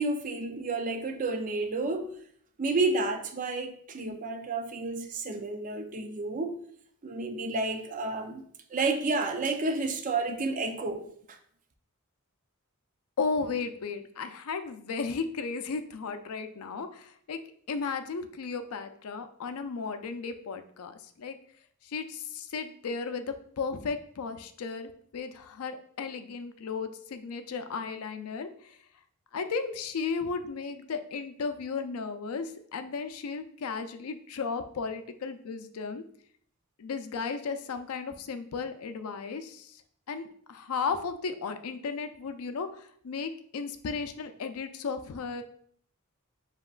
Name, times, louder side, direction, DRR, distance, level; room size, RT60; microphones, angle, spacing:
voice 1, 0.0-2.1 2.6-6.6 7.0-8.4 8.7-11.4, right 3 dB, 35° right, 0.5 m, -30 dB
voice 2, 13.2-17.4 17.7-21.4 21.9-23.3 23.6-28.5 29.3-36.0 36.8-39.7 40.1-42.7 43.0-45.4, left 5 dB, 85° left, 0.5 m, -35 dB
7.3 x 2.9 x 2.4 m
head